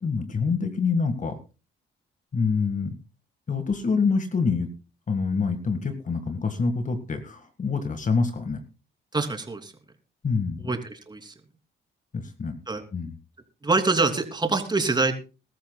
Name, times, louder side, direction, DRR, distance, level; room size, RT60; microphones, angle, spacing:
voice 1, 0.0-1.4 2.3-2.9 3.5-4.7 5.1-8.6 10.2-10.6 12.1-12.6 12.9-13.1, left 4 dB, 40° left, 8 dB, 1.9 m, -26 dB
voice 2, 9.1-9.7 10.6-11.3 12.7-12.8 13.6-15.1, right 3 dB, 20° right, 5 dB, 3.2 m, -25 dB
21.5 x 13.5 x 2.3 m, 0.32 s
cardioid pair, 90°, 20 cm